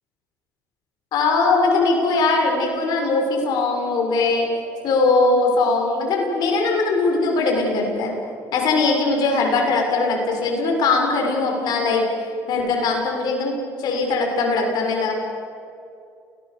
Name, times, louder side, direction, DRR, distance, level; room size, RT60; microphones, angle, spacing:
voice 1, 1.1-4.5 4.8-8.1 8.5-15.1, left 3 dB, 65° left, 1 dB, 6.9 m, -20 dB
29.0 x 19.0 x 7.1 m, 2.5 s
supercardioid pair, 85°, 8 cm